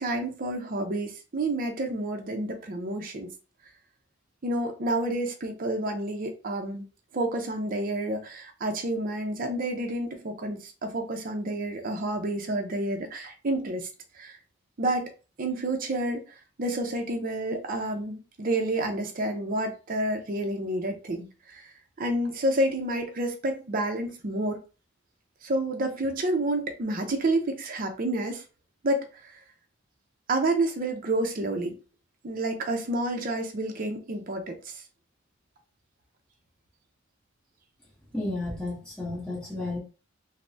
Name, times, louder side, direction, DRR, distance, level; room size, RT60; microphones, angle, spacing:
voice 1, 0.0-3.3 4.4-6.9 7.1-13.9 14.1-14.4 14.8-15.1 15.4-16.2 16.6-21.3 21.5-21.7 22.0-24.6 25.4-28.4 28.8-29.4 30.3-31.7 32.2-34.8, right 1 dB, 45° right, 0.5 m, -29 dB
voice 2, 38.1-39.8, left 2 dB, 5° left, 0.9 m, -32 dB
3.2 x 2.0 x 2.6 m
head